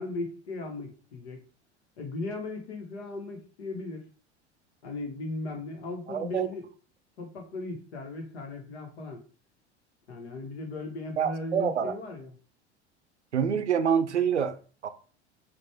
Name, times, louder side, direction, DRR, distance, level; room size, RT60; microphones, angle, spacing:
voice 1, 0.0-1.4 2.0-4.0 4.8-6.7 7.2-9.2 10.1-12.3, left 2 dB, 70° left, 1.4 m, -37 dB
voice 2, 6.1-6.5 11.2-11.9 13.3-14.6 14.8-14.9, right 7 dB, 90° right, 0.5 m, -26 dB
5.2 x 2.6 x 3.4 m
figure-of-eight pair, 75°, 34 cm